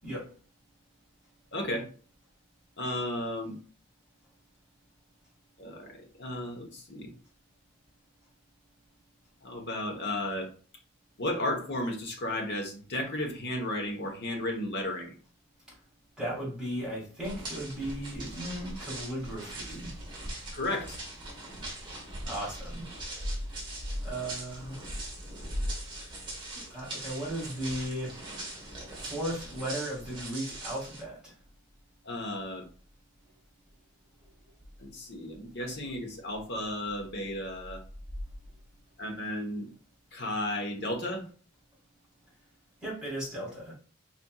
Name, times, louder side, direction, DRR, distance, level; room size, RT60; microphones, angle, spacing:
voice 1, 1.5-1.8 2.8-3.5 5.6-7.1 9.4-10.5 11.2-15.1 20.5-21.0 32.0-32.6 34.8-37.8 39.0-39.7 40.1-41.2, left 1 dB, 50° left, 2 dB, 1.0 m, -34 dB
voice 2, 16.2-19.9 22.2-22.9 24.0-24.8 26.5-28.2 29.0-31.3 42.8-43.7, right 1 dB, 5° right, -6 dB, 2.0 m, -36 dB
sound 1, 17.2-31.0, right 1 dB, 20° right, 1.3 m, -41 dB
4.3 x 4.1 x 2.3 m, 0.41 s
head